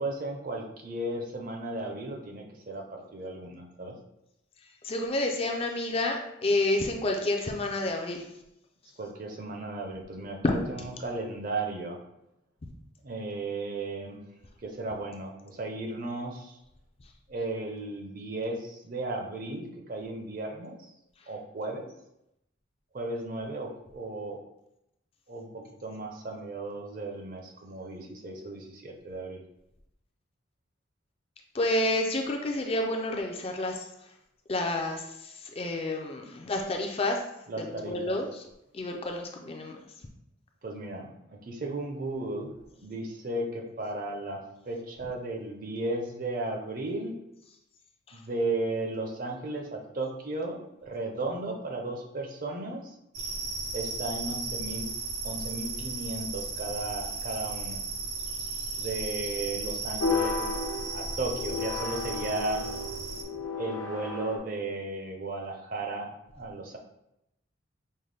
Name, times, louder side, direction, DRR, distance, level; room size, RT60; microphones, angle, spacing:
voice 1, 0.0-3.9 9.0-12.0 13.0-14.2 14.6-16.5 17.3-20.8 21.3-21.9 22.9-24.4 25.3-29.4 37.5-38.2 40.6-42.5 42.8-47.2 48.1-52.8 53.7-54.9 55.2-57.8 58.8-60.4 60.9-62.7 63.5-66.8, right 2 dB, 45° right, 2 dB, 0.6 m, -35 dB
voice 2, 4.8-8.2 10.4-10.6 31.5-33.8 34.5-37.2 37.6-38.4 38.7-39.8 48.1-48.2, left 2 dB, 30° left, 2 dB, 0.4 m, -29 dB
sound 1, 53.1-63.2, right 3 dB, 85° right, 0.9 m, -35 dB
sound 2, 60.0-64.4, left 4 dB, 80° left, 0.6 m, -33 dB
5.4 x 2.1 x 3.2 m, 0.84 s
head